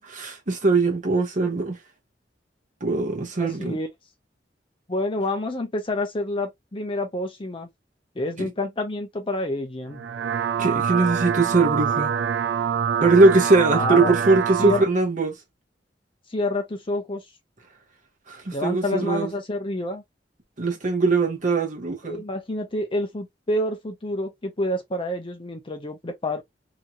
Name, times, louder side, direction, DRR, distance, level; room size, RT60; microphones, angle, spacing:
voice 1, 0.0-1.8 2.8-3.7 8.4-8.5 10.6-12.1 13.0-15.3 18.3-19.3 20.6-22.2, right 3 dB, 45° right, 1.0 m, -21 dB
voice 2, 3.4-3.9 4.9-7.7 8.2-10.0 13.7-14.1 14.6-14.9 16.3-17.2 18.5-20.0 22.1-26.4, left 1 dB, 30° left, 0.7 m, -28 dB
sound 1, 9.9-14.8, right 8 dB, 90° right, 0.4 m, -25 dB
2.9 x 2.8 x 2.3 m
head